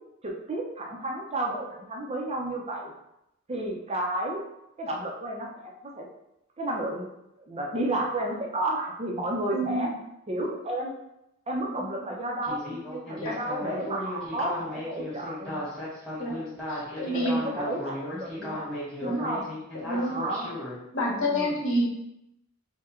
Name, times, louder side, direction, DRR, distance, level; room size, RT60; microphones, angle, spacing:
voice 1, 0.2-2.9 3.5-4.4 4.8-6.1 6.6-7.1 7.4-9.9 10.3-10.9 11.5-15.6 17.1-18.7 19.0-19.4 19.9-20.5 21.3-21.5, right 1 dB, 25° right, 0 dB, 0.5 m, -32 dB
voice 2, 9.5-9.9 11.8-11.9 13.2-13.3 16.2-16.3 16.7-17.4 19.0-19.2 19.8-20.2 20.9-21.8, equal, 60° left, -3 dB, 1.3 m, -28 dB
Speech synthesizer, 12.4-20.7, left 1 dB, 5° left, 1.4 m, -36 dB
5.6 x 2.2 x 3.6 m, 0.85 s
head